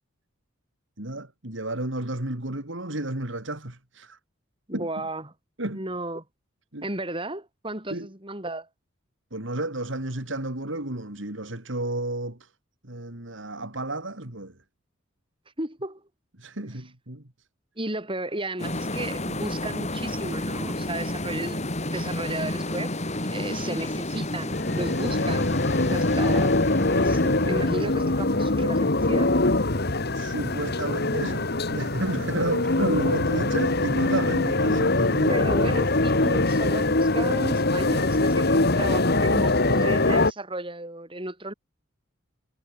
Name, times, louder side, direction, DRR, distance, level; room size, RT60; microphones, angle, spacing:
voice 1, 1.0-4.2 4.7-4.9 5.6-5.9 6.7-6.8 7.9-8.1 9.3-12.5 12.8-14.6 16.4-17.2 30.1-35.4, right 1 dB, 60° right, 3.2 m, -32 dB
voice 2, 4.7-5.3 5.7-6.2 6.8-8.7 15.6-16.0 17.8-21.6 21.9-22.9 23.3-25.6 25.9-26.5 26.9-29.4 35.3-41.5, right 1 dB, 25° right, 6.1 m, -34 dB
sound 1, 18.6-29.1, left 1 dB, 35° left, 3.8 m, -31 dB
sound 2, 24.5-40.3, left 2 dB, 50° left, 1.7 m, -23 dB
head